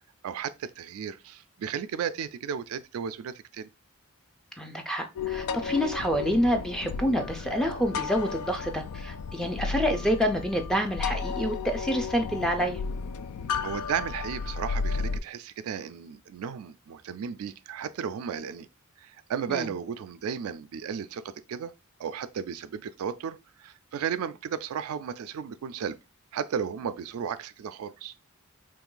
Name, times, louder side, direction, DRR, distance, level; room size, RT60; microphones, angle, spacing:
voice 1, 0.2-3.7 13.6-18.7 19.0-21.7 22.0-26.0 26.3-28.1, right 7 dB, 75° right, 0.3 m, -34 dB
voice 2, 4.6-12.8 19.5-19.7, equal, 5° left, 0.5 m, -27 dB
sound 1, 5.2-15.2, left 5 dB, 80° left, 0.3 m, -33 dB
3.0 x 2.5 x 3.7 m
head